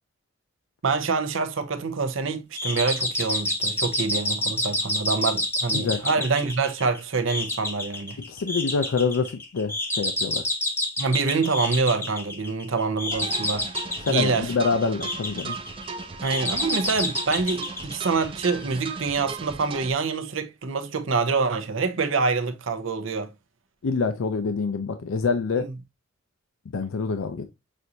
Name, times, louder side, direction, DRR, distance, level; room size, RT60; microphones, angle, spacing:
voice 1, 0.8-8.2 11.0-13.7 14.1-14.5 16.2-23.3 25.6-25.7, right 4 dB, 75° right, 0.7 m, -26 dB
sound 1, 2.6-18.7, left 1 dB, 10° left, 0.7 m, -29 dB
voice 2, 8.3-10.4 14.0-15.6 23.8-25.7 26.7-27.5, left 4 dB, 80° left, 0.4 m, -26 dB
sound 2, 13.1-19.9, right 4 dB, 25° right, 0.5 m, -36 dB
6.2 x 2.6 x 2.6 m
head